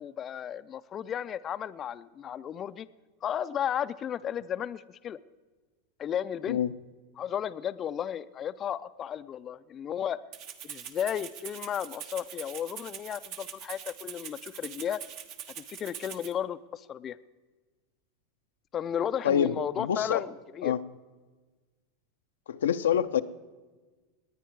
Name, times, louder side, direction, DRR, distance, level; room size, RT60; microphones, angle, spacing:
voice 1, 0.0-2.9 3.2-5.2 6.0-6.6 7.2-10.2 10.6-15.0 15.6-17.2 18.7-20.7, left 9 dB, 30° left, 13 dB, 0.4 m, -34 dB
Rattle (instrument), 10.3-16.3, right 9 dB, 55° right, 1.1 m, -43 dB
voice 2, 19.2-20.2 20.6-20.8 22.5-23.2, left 9 dB, 90° left, 10 dB, 0.6 m, -26 dB
20.0 x 9.2 x 4.6 m, 1.3 s
supercardioid pair, 120°, 0 cm